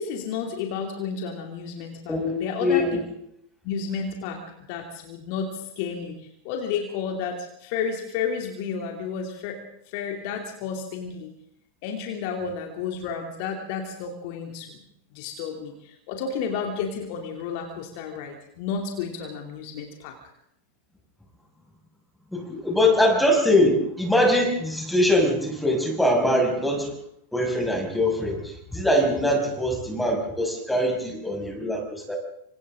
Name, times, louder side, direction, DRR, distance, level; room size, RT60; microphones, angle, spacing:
voice 1, 0.0-2.8 3.6-4.4 4.7-9.6 9.9-11.3 11.8-14.8 15.1-20.1, left 6 dB, 45° left, 3 dB, 2.6 m, -31 dB
voice 2, 2.6-3.0 22.3-26.9 27.3-32.2, left 1 dB, 5° left, 2 dB, 5.9 m, -22 dB
28.0 x 25.5 x 3.7 m, 0.72 s
figure-of-eight pair, 90°, 0 cm